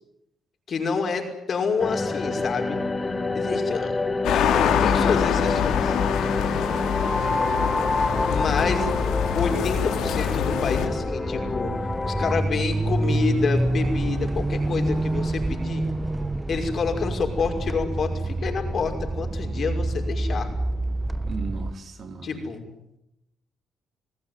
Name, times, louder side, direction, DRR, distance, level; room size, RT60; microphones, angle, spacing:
voice 1, 0.7-2.8 3.3-4.0 4.3-6.0 8.3-8.9 9.3-11.7 12.0-15.8 16.5-20.5 22.2-22.6, left 5 dB, 50° left, 4 dB, 5.8 m, -28 dB
sound 1, 1.8-12.4, left 3 dB, 20° left, 2.2 m, -27 dB
sound 2, 4.2-10.9, left 9 dB, 85° left, 3.4 m, -25 dB
voice 2, 7.1-7.8 21.2-22.3, right 4 dB, 55° right, 6 dB, 4.2 m, -38 dB
sound 3, 8.1-21.7, right 2 dB, 15° right, 1.3 m, -28 dB
29.0 x 18.5 x 9.6 m, 0.85 s
cardioid pair, 90°, 0 cm